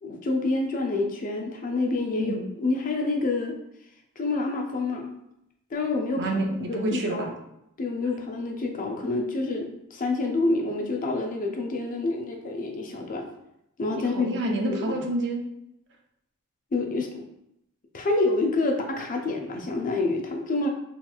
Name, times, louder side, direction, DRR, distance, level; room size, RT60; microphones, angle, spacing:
voice 1, 0.0-3.6 4.2-5.1 5.7-6.3 6.7-7.3 7.8-13.2 13.8-14.3 14.8-14.9 16.7-17.1 17.9-20.7, left 2 dB, 40° left, 2 dB, 0.4 m, -27 dB
voice 2, 6.2-7.3 13.9-15.4, right 1 dB, 55° right, 1 dB, 0.5 m, -28 dB
3.1 x 2.9 x 2.3 m, 0.80 s
head